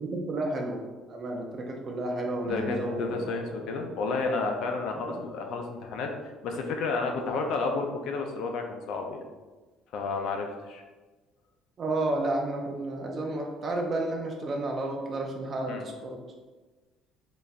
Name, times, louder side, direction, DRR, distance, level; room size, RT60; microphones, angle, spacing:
voice 1, 0.0-3.3 5.1-5.2 11.8-16.2, right 2 dB, 30° right, 1 dB, 0.5 m, -31 dB
voice 2, 2.4-6.1 6.4-9.2 9.9-10.8 15.7-15.8, left 3 dB, 55° left, 3 dB, 0.5 m, -31 dB
Acoustic guitar, 2.5-5.7, left 1 dB, 80° right, 0.6 m, -43 dB
4.0 x 3.3 x 2.4 m, 1.3 s
cardioid pair, 180°, 0 cm